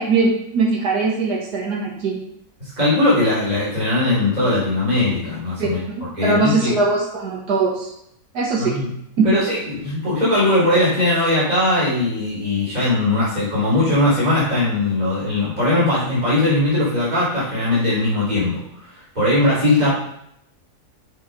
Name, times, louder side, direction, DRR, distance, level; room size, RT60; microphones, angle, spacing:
voice 1, 0.0-2.2 5.6-7.9 8.3-8.8 9.2-9.3, right 4 dB, 80° right, -3 dB, 2.0 m, -21 dB
voice 2, 2.6-5.8 6.2-6.7 8.6-8.9 9.2-18.6 18.8-19.9, left 1 dB, 25° right, -10 dB, 3.4 m, -19 dB
7.4 x 4.8 x 5.3 m, 0.75 s
omnidirectional pair, 1.7 m